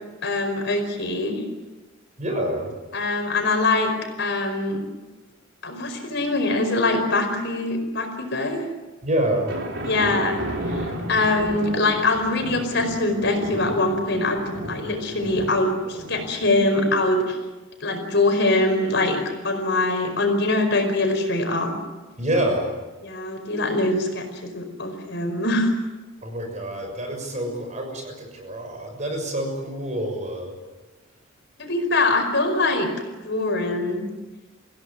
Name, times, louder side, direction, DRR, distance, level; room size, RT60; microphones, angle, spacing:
voice 1, 0.2-1.4 2.9-3.9 4.2-4.8 5.6-8.6 9.8-17.4 17.8-21.8 23.0-25.7 31.6-32.9 33.2-34.0, left 2 dB, 60° left, 5 dB, 5.1 m, -23 dB
voice 2, 2.2-2.7 9.0-9.5 22.2-22.7 26.2-30.5, right 1 dB, 35° right, 3 dB, 6.4 m, -27 dB
sound 1, 9.5-16.6, equal, 60° right, 4.1 m, -33 dB
26.5 x 16.5 x 9.7 m, 1.2 s
head